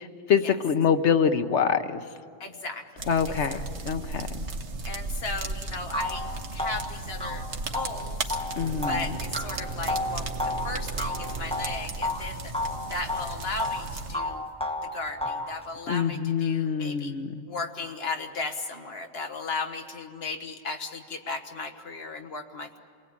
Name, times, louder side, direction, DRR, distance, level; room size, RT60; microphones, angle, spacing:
voice 1, 0.0-2.0 3.1-3.6 3.9-4.4 8.6-9.1 15.9-17.4, left 7 dB, 90° left, 8 dB, 1.2 m, -25 dB
voice 2, 2.4-3.1 3.5-3.6 4.9-8.4 8.9-12.5 12.9-14.4 14.8-17.1 17.5-22.8, left 3 dB, 65° left, 6 dB, 1.5 m, -36 dB
sound 1, 3.0-14.2, right 3 dB, 85° right, 1.5 m, -35 dB
sound 2, 5.4-5.5 5.9-12.2 12.5-13.9 14.1-15.5, left 2 dB, 5° left, 1.4 m, -32 dB
sound 3, 8.6-13.1, right 5 dB, 45° right, 1.6 m, -42 dB
28.0 x 19.0 x 8.6 m, 2.4 s
omnidirectional pair, 1.1 m